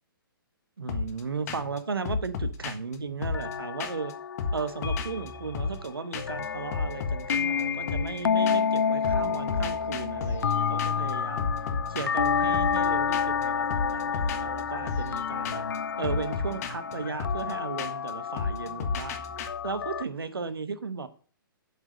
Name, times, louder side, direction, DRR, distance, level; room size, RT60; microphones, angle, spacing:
voice 1, 0.8-4.1 4.5-11.5 11.9-15.7 16.0-19.2 19.6-21.1, right 5 dB, 85° right, 1.2 m, -35 dB
sound 1, 0.9-1.2 1.5-1.8 2.0-4.1 4.4-5.9 6.1-6.4 6.7-8.8 9.0-19.5, left 4 dB, 45° left, 1.5 m, -34 dB
sound 2, 3.3-20.0, left 7 dB, 75° left, 0.5 m, -30 dB
8.1 x 5.2 x 7.6 m
hypercardioid pair, 130°, 12 cm